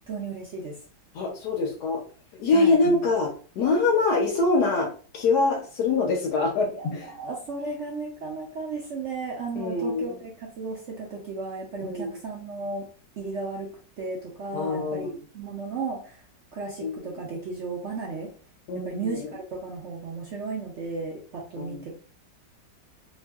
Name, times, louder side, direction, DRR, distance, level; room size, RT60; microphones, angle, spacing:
voice 1, 0.1-0.8 2.5-2.8 6.7-12.9 13.2-13.7 14.0-16.2 16.5-18.3 18.7-21.9, right 4 dB, 65° right, -2 dB, 0.7 m, -34 dB
voice 2, 1.1-2.0 2.4-3.3 3.6-7.1 9.6-10.2 11.8-12.1 14.5-15.2 16.8-17.1 18.7-19.3 21.6-21.9, left 3 dB, 70° left, 1 dB, 1.2 m, -24 dB
3.1 x 2.6 x 2.3 m, 0.40 s
omnidirectional pair, 1.9 m